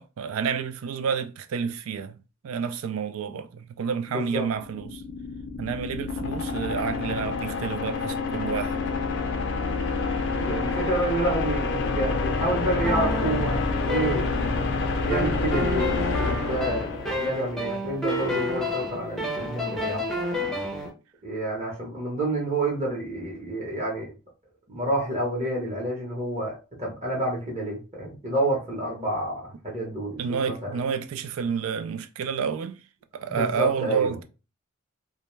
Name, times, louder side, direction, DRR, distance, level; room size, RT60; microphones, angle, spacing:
voice 1, 0.0-2.2 2.4-5.0 5.6-8.9 30.2-32.8 33.1-34.2, right 6 dB, 85° right, 0.3 m, -29 dB
voice 2, 4.1-4.5 10.3-14.7 14.9-20.1 21.2-24.1 24.7-30.2 30.5-30.8 33.3-34.1, right 1 dB, 30° right, 0.8 m, -29 dB
sound 1, 4.5-17.6, left 3 dB, 55° left, 0.4 m, -28 dB
sound 2, 12.8-14.7 15.1-20.9, left 1 dB, ahead, 0.5 m, -30 dB
2.2 x 2.1 x 3.0 m
head